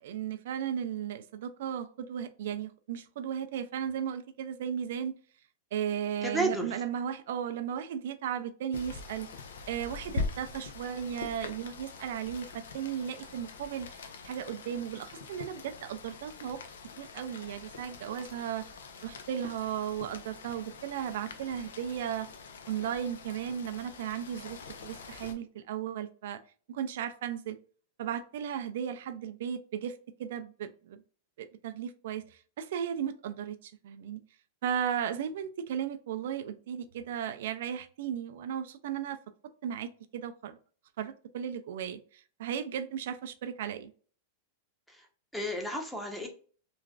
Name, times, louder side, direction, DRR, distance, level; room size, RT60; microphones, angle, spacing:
voice 1, 0.0-5.1 5.7-9.3 9.7-16.6 17.0-18.6 19.0-22.3 22.7-24.6 24.8-26.4 26.7-27.6 28.0-31.0 31.4-34.2 34.6-39.2 39.6-40.6 41.0-43.9, right 9 dB, 70° right, 9 dB, 0.3 m, -35 dB
voice 2, 6.2-6.8 44.9-45.1 45.3-46.3, right 1 dB, 5° left, 2 dB, 0.7 m, -32 dB
Rain, 8.7-25.3, left 4 dB, 85° left, 0.5 m, -43 dB
3.0 x 2.4 x 2.3 m, 0.42 s
hypercardioid pair, 130°, 0 cm